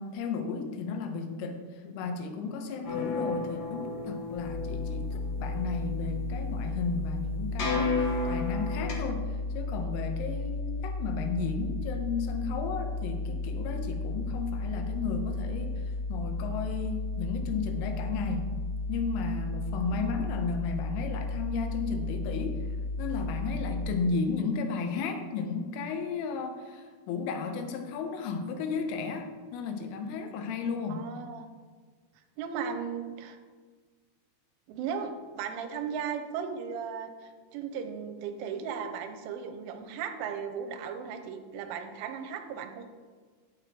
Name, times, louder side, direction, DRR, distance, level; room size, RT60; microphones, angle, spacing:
voice 1, 0.0-15.8 16.1-18.5 18.9-22.7 23.0-31.1, left 4 dB, 85° left, 5 dB, 3.5 m, -34 dB
sound 1, 2.8-8.9, left 3 dB, 60° left, 1.8 m, -33 dB
sound 2, 4.4-23.9, left 3 dB, 70° right, 0.9 m, -34 dB
voice 2, 30.9-31.5 32.4-33.4 34.7-42.8, right 7 dB, 85° right, 7 dB, 3.1 m, -36 dB
16.0 x 7.0 x 3.0 m, 1.5 s
omnidirectional pair, 5.7 m